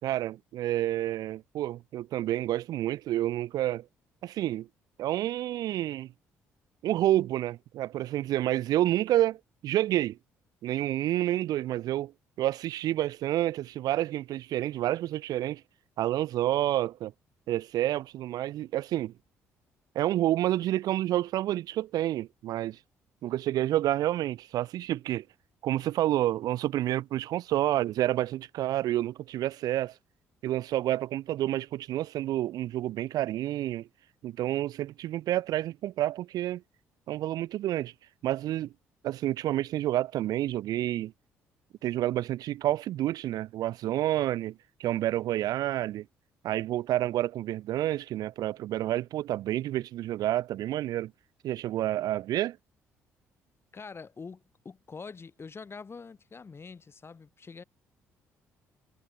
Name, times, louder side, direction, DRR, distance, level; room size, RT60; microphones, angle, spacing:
voice 1, 0.0-3.9 4.2-4.7 5.0-6.1 6.8-10.2 10.6-15.6 16.0-17.1 17.5-19.1 19.9-22.8 23.2-25.3 25.6-30.0 30.4-33.9 34.2-36.6 37.1-37.9 38.2-38.7 39.0-41.1 41.8-46.1 46.4-51.1 51.4-52.6, right 13 dB, 70° right, 4.0 m, -29 dB
voice 2, 53.7-57.6, left 5 dB, 35° left, 5.9 m, -45 dB
hypercardioid pair, 55°, 7 cm